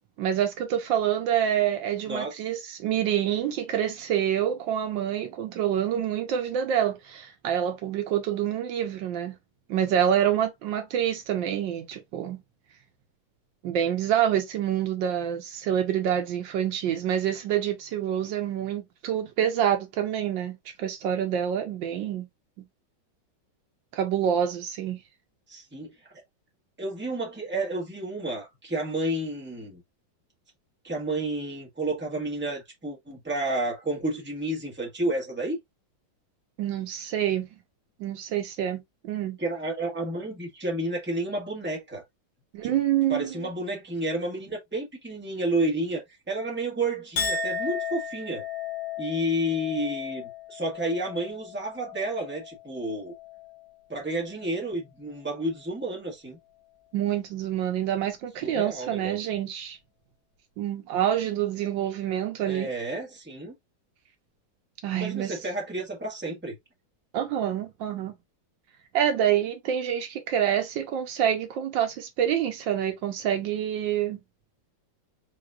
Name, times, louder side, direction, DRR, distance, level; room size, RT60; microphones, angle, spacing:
voice 1, 0.2-9.3 9.7-12.4 13.6-22.3 22.6-22.7 23.9-25.0 36.6-37.5 38.0-39.4 42.5-43.3 56.9-59.8 60.6-62.7 64.8-65.4 67.1-68.1 68.9-74.2, right 10 dB, 80° right, 1.5 m, -27 dB
voice 2, 2.1-2.4 25.5-25.9 26.8-29.8 30.8-35.6 39.4-42.0 42.6-42.8 43.1-48.4 49.0-53.1 53.9-56.4 58.4-59.3 62.5-63.5 64.9-66.5, right 1 dB, 5° right, 1.3 m, -31 dB
Chink clink, 47.2-53.7 54.1-54.7, left 5 dB, 90° left, 2.0 m, -35 dB
4.8 x 3.0 x 2.3 m
omnidirectional pair, 2.1 m